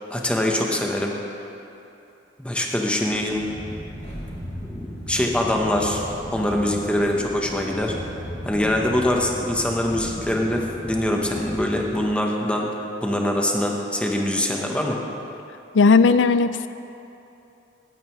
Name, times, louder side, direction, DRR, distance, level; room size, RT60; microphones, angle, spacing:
voice 1, 0.1-1.2 2.4-3.5 4.6-6.0 6.3-8.0 8.4-12.7 13.0-15.0, left 1 dB, 5° left, 0 dB, 1.0 m, -23 dB
sound 1, 3.0-12.1, equal, 35° left, 1.8 m, -36 dB
voice 2, 15.7-16.7, left 4 dB, 75° left, 13 dB, 0.4 m, -16 dB
17.5 x 9.0 x 3.1 m, 2.8 s
head